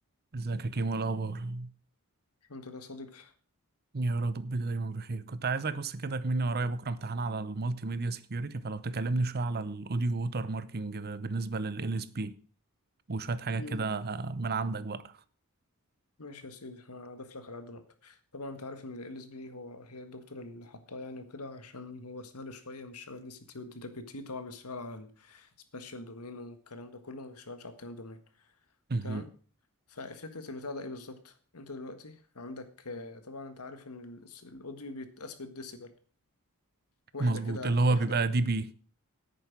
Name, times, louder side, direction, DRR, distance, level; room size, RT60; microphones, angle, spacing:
voice 1, 0.3-1.7 3.9-12.3 13.1-15.2 28.9-29.2 37.2-38.7, right 3 dB, 45° right, 0.8 m, -31 dB
voice 2, 2.5-3.3 13.6-13.8 16.2-28.5 29.0-29.3 29.9-35.9 37.1-38.1, left 2 dB, 90° left, 1.7 m, -43 dB
10.5 x 8.9 x 6.0 m
head